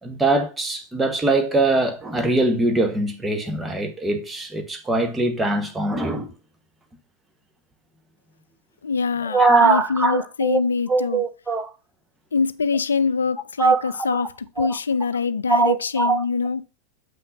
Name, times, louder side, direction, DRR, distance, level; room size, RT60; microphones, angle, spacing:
voice 1, 0.0-6.3 9.2-10.6 10.9-11.7 13.6-14.2 14.6-14.8 15.5-16.2, right 3 dB, 10° right, 1.1 m, -22 dB
voice 2, 8.8-11.2 12.3-14.3 14.6-16.6, left 5 dB, 70° left, 0.4 m, -24 dB
7.7 x 5.7 x 2.5 m
figure-of-eight pair, 90°, 0 cm